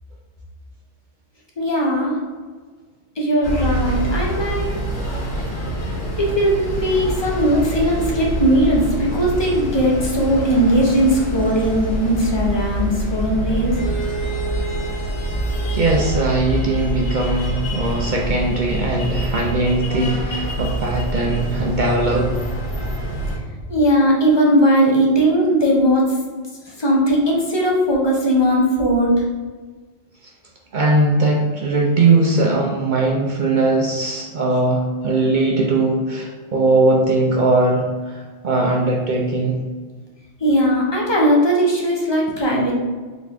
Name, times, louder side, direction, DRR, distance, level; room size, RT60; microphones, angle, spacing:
voice 1, 1.6-2.2 3.2-4.7 6.2-13.8 23.7-26.2 26.8-29.2 40.4-42.7, equal, 25° left, -3 dB, 0.6 m, -18 dB
sound 1, 3.4-23.4, right 1 dB, 85° left, 1.7 m, -25 dB
voice 2, 15.7-22.3 30.7-39.6, right 2 dB, 70° right, -1 dB, 0.4 m, -19 dB
3.9 x 3.0 x 3.5 m, 1.4 s
omnidirectional pair, 1.3 m